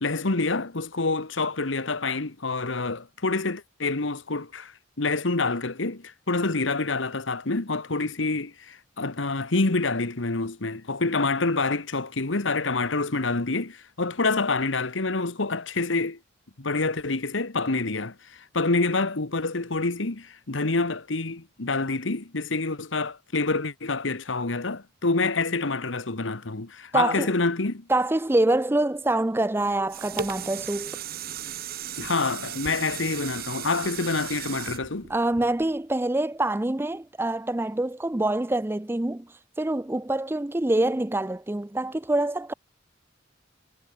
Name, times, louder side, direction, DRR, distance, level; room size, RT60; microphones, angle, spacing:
voice 1, 0.0-4.7 5.0-16.2 16.6-27.9 32.0-35.1, left 3 dB, 85° left, 1.5 m, -27 dB
voice 2, 26.9-27.3 27.9-31.0 35.1-39.3 39.6-42.5, right 2 dB, 10° right, 0.5 m, -25 dB
sound 1, 29.6-35.9 36.4-36.5, right 9 dB, 50° right, 1.2 m, -36 dB
head